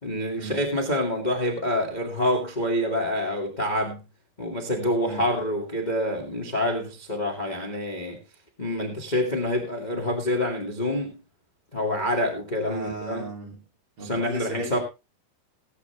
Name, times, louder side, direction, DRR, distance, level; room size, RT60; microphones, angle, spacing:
voice 1, 0.0-4.0 4.4-8.2 8.6-11.1 11.7-13.2 14.0-14.8, left 1 dB, 15° left, 1.7 m, -27 dB
voice 2, 12.6-13.6 14.0-14.8, right 3 dB, 40° right, 3.3 m, -36 dB
19.0 x 8.9 x 3.3 m
omnidirectional pair, 4.5 m